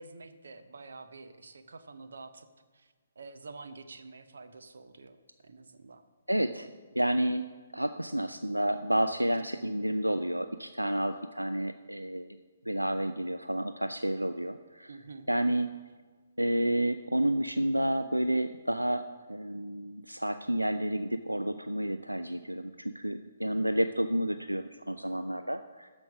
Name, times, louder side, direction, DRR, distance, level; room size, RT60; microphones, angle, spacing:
voice 1, 0.0-2.5 2.7-5.2 5.4-6.0 6.5-6.7 14.9-15.3, right 3 dB, 60° right, 10 dB, 0.8 m, -48 dB
voice 2, 6.3-6.7 7.0-7.4 7.7-12.3 12.7-14.9 15.3-15.7 16.4-25.9, right 1 dB, 90° right, 10 dB, 0.4 m, -30 dB
13.0 x 5.3 x 6.0 m, 1.4 s
figure-of-eight pair, 130°, 0 cm